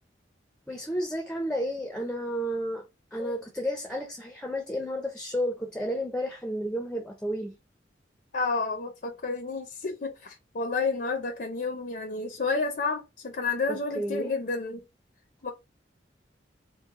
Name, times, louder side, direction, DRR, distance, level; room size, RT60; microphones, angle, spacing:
voice 1, 0.7-2.8 3.1-7.6 13.7-14.3, equal, 5° left, 0.7 m, -32 dB
voice 2, 8.3-14.8 15.4-15.5, left 4 dB, 55° left, 0.7 m, -30 dB
4.6 x 2.2 x 3.7 m
head